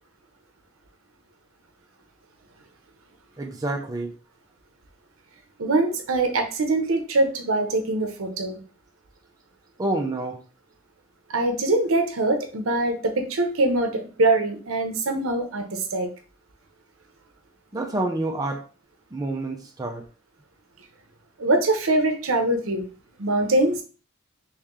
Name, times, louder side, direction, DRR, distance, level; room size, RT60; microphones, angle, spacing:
voice 1, 3.4-4.1 9.8-10.4 17.7-18.7 19.1-20.0, right 2 dB, 20° right, 2 dB, 0.5 m, -28 dB
voice 2, 5.6-8.6 11.3-16.1 21.4-22.8 23.2-23.8, right 2 dB, 75° right, 6 dB, 0.7 m, -23 dB
3.2 x 3.0 x 3.6 m, 0.38 s
head